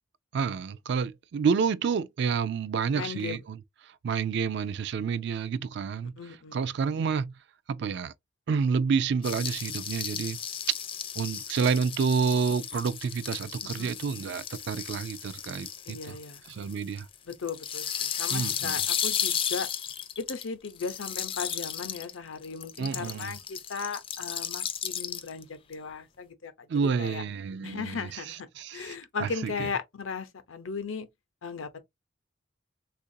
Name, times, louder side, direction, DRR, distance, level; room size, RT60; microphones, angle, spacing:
voice 1, 0.3-3.6 4.0-6.1 6.5-7.3 7.7-8.1 8.5-10.4 11.2-16.2 16.5-17.1 18.3-18.8 22.8-23.3 26.7-29.7, right 6 dB, 60° right, 0.3 m, -29 dB
voice 2, 2.9-3.4 6.2-6.7 13.8-14.0 15.9-16.4 17.3-19.7 20.2-26.7 27.0-27.2 27.6-31.1 31.4-31.8, left 5 dB, 85° left, 0.7 m, -37 dB
sound 1, 9.2-22.1 22.4-25.4 25.7-25.8, left 8 dB, 25° left, 0.3 m, -34 dB
3.7 x 2.4 x 2.6 m
head